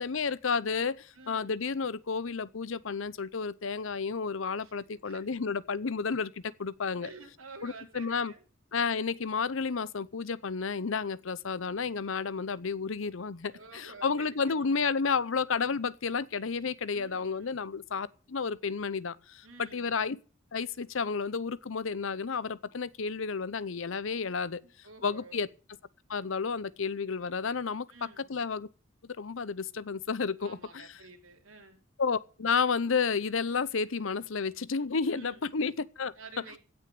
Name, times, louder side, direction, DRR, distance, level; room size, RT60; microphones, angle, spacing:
voice 1, 0.0-7.1 7.6-8.3 8.7-20.2 20.5-24.6 25.0-25.5 26.1-28.7 29.0-30.9 32.0-36.1, left 5 dB, 70° left, 0.7 m, -31 dB
voice 2, 1.1-1.5 4.6-5.2 7.0-8.4 8.7-8.9 13.5-14.8 16.9-17.6 19.4-19.9 24.6-25.5 27.9-28.3 30.4-31.8 35.1-35.5 36.2-36.6, right 3 dB, 80° right, 3.5 m, -51 dB
16.5 x 6.4 x 8.4 m
head